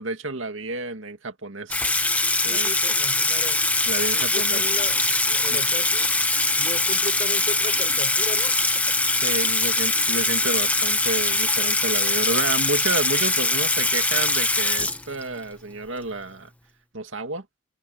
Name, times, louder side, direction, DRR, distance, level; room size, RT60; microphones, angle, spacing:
voice 1, 0.0-2.0 2.4-2.7 3.9-4.6 5.5-5.6 9.2-16.5 16.9-17.5, right 3 dB, 75° right, 2.2 m, -30 dB
Water tap faucet / Sink (filling or washing), 1.7-15.4, left 2 dB, 5° left, 1.1 m, -22 dB
voice 2, 2.4-3.6 4.1-6.2 6.6-9.0, left 2 dB, 35° left, 5.8 m, -36 dB
head